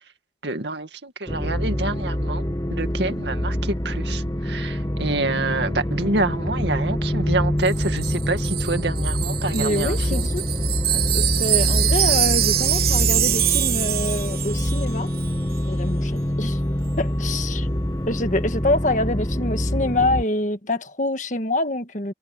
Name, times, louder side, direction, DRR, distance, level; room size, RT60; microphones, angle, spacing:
voice 1, 0.4-2.5 2.7-10.2, right 2 dB, 80° right, 2.2 m, -27 dB
sound 1, 1.3-20.2, equal, 20° left, 1.4 m, -25 dB
Wind chime, 7.7-14.9 15.1-15.3, right 13 dB, 60° right, 1.4 m, -24 dB
voice 2, 9.5-10.4 10.9-15.1 15.7-16.6 17.0-17.7 18.1-22.1, left 2 dB, 45° left, 1.6 m, -26 dB
head